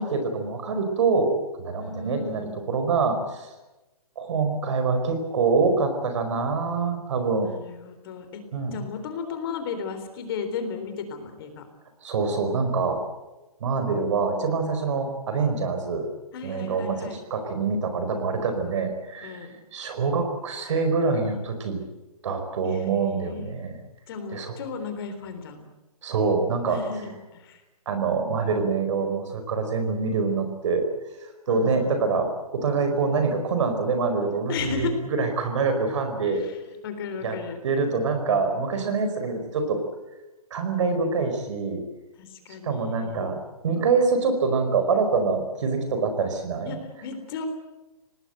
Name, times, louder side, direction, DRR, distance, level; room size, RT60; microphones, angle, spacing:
voice 1, 0.0-1.3 1.6-3.5 4.2-7.5 8.5-8.7 12.0-13.0 13.6-16.1 16.4-21.8 22.2-23.7 24.3-24.5 26.0-26.8 27.8-30.9 31.2-36.4 37.2-37.4 37.6-39.8 40.5-41.8 42.6-46.7, right 4 dB, 55° right, 7 dB, 4.9 m, -25 dB
voice 2, 1.7-2.5 7.4-8.4 8.7-11.6 16.3-17.2 19.2-19.6 22.6-23.5 24.1-25.7 26.7-27.6 31.5-32.1 34.5-34.9 36.3-36.6 36.8-37.6 42.2-43.4 46.7-47.5, left 6 dB, 40° left, 8 dB, 3.7 m, -35 dB
25.5 x 19.0 x 8.0 m, 1.1 s
hypercardioid pair, 160°, 19 cm